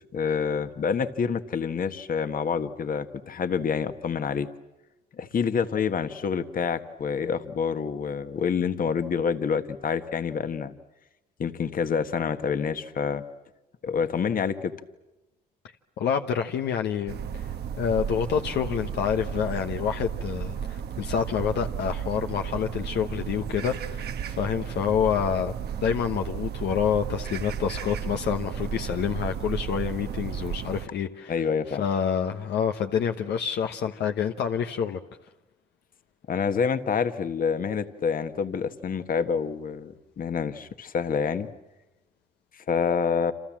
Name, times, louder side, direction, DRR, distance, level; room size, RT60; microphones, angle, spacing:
voice 1, 0.1-4.5 5.2-10.7 11.4-13.2 13.8-14.7 31.3-31.8 36.3-41.5 42.6-43.3, left 6 dB, 55° left, 1.6 m, -27 dB
voice 2, 16.0-35.0, left 8 dB, 80° left, 1.1 m, -28 dB
sound 1, 17.1-30.9, right 8 dB, 70° right, 1.2 m, -34 dB
29.0 x 27.0 x 7.5 m
cardioid pair, 75°, 17 cm